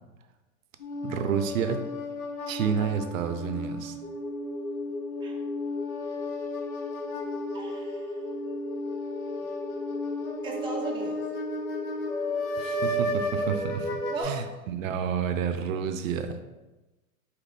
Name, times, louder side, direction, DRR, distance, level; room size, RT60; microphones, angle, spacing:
sound 1, 0.8-14.2, left 1 dB, 90° left, 1.0 m, -34 dB
voice 1, 1.0-1.9 2.5-4.0 12.6-14.0 14.2-16.5, right 7 dB, 70° right, 9 dB, 0.5 m, -30 dB
sound 2, 4.0-14.1, left 2 dB, 15° left, 1.0 m, -37 dB
voice 2, 7.5-8.3 10.4-11.2 14.1-14.6, right 3 dB, 10° right, 0 dB, 0.6 m, -37 dB
5.0 x 3.0 x 3.2 m, 1.1 s
hypercardioid pair, 110°, 42 cm